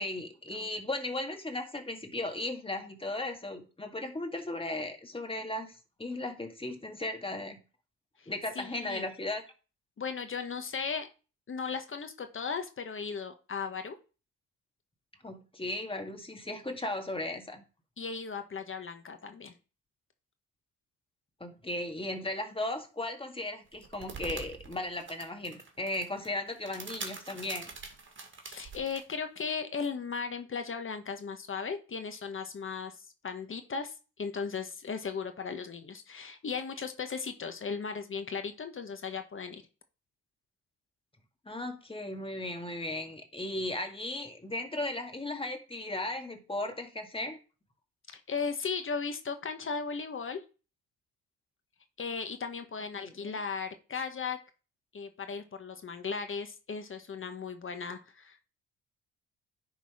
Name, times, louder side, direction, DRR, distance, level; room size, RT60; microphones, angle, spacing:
voice 1, 0.0-7.6 8.3-9.4 15.2-17.6 21.4-27.7 41.5-47.4 53.0-53.4, left 2 dB, 15° left, 5 dB, 2.0 m, -36 dB
voice 2, 8.5-9.0 10.0-11.1 11.5-14.0 18.0-19.5 28.4-39.6 48.1-50.4 52.0-54.4 54.9-58.4, left 5 dB, 40° left, 7 dB, 1.3 m, -36 dB
sound 1, 23.7-29.0, right 4 dB, 40° right, 2.0 m, -44 dB
10.0 x 4.0 x 5.0 m, 0.34 s
supercardioid pair, 65°, 31 cm